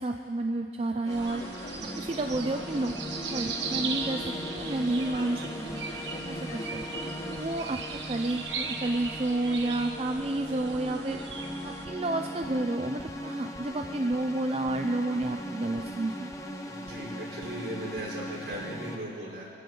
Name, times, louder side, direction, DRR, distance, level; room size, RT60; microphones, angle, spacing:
voice 1, 0.0-1.4 1.8-2.9 3.3-5.5 6.3-6.8 7.3-11.2 11.6-16.3, right 2 dB, 35° right, 5 dB, 0.5 m, -30 dB
sound 1, 1.0-19.0, left 1 dB, 15° left, 1.0 m, -39 dB
sound 2, 1.1-11.9, right 5 dB, 80° right, 1.4 m, -38 dB
sound 3, 1.2-7.4, equal, 45° left, 5.3 m, -41 dB
voice 2, 16.7-19.5, right 1 dB, 65° right, -4 dB, 4.5 m, -38 dB
25.0 x 14.5 x 3.9 m, 2.3 s
head